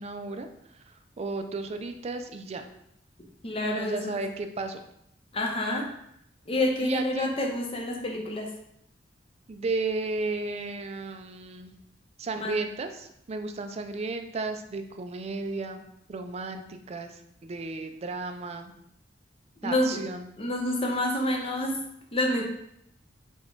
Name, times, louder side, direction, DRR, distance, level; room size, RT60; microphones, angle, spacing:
voice 1, 0.0-2.7 3.6-4.8 6.8-7.3 9.5-11.8 12.2-18.7 19.6-20.3, right 3 dB, 35° right, 7 dB, 0.4 m, -34 dB
voice 2, 3.4-4.2 5.3-5.9 6.5-8.5 12.4-12.6 19.6-20.0 20.4-21.8 22.1-22.4, left 1 dB, 30° left, 0 dB, 0.7 m, -28 dB
4.3 x 2.3 x 4.5 m, 0.76 s
head